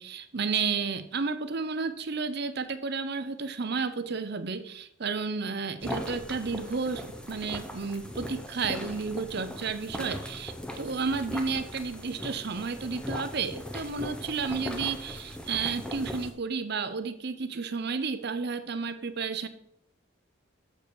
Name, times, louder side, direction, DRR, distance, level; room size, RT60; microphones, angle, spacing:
voice 1, 0.0-19.5, right 5 dB, 50° right, 10 dB, 0.6 m, -32 dB
sound 1, 5.8-16.3, left 1 dB, 5° left, 0.6 m, -39 dB
6.9 x 6.8 x 4.6 m, 0.76 s
head